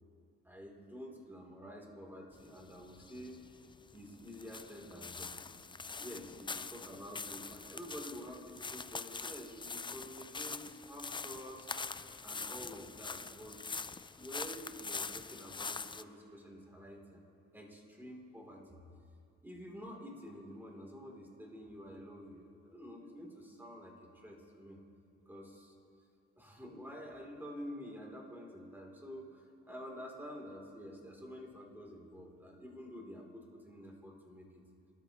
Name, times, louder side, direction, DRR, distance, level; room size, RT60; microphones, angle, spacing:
voice 1, 0.4-3.4 3.9-5.4 6.0-13.7 14.2-17.2 17.5-18.8 19.4-24.8 25.3-25.7 26.4-34.5, equal, 5° right, -2 dB, 3.2 m, -49 dB
sound 1, 2.3-16.0, left 4 dB, 15° left, 0.4 m, -44 dB
24.5 x 13.0 x 3.0 m, 2.4 s
cardioid pair, 85°, 29 cm